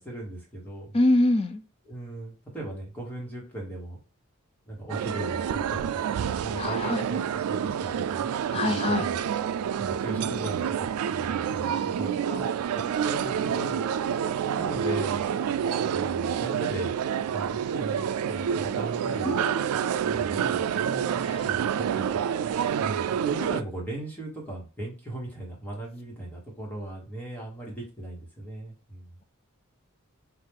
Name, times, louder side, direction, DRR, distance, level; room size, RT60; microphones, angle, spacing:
voice 1, 0.0-1.0 1.9-4.0 4.7-5.9 6.3-9.2 9.8-12.5 12.7-13.8 14.3-15.3 15.9-16.9 17.3-19.4 20.0-22.2 22.8-29.1, right 1 dB, 10° left, -3 dB, 1.4 m, -38 dB
voice 2, 0.9-1.6 6.6-7.0 8.5-9.1 19.2-19.8 21.3-21.4, left 1 dB, 25° left, 9 dB, 0.4 m, -25 dB
sound 1, 4.9-23.6, right 8 dB, 85° right, 0.3 m, -28 dB
4.5 x 2.5 x 3.6 m, 0.33 s
head